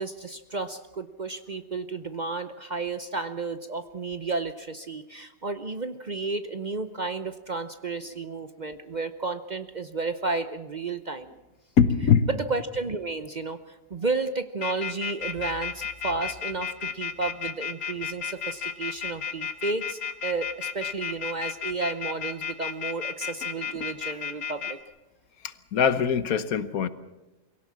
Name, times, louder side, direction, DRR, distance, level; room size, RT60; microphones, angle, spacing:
voice 1, 0.0-11.3 12.3-24.8, right 3 dB, 40° right, 0.7 m, -32 dB
voice 2, 11.8-12.3 25.4-26.9, left 7 dB, 80° left, 1.5 m, -22 dB
sound 1, 14.6-24.7, left 7 dB, 65° left, 1.8 m, -32 dB
23.5 x 17.0 x 7.4 m
omnidirectional pair, 1.5 m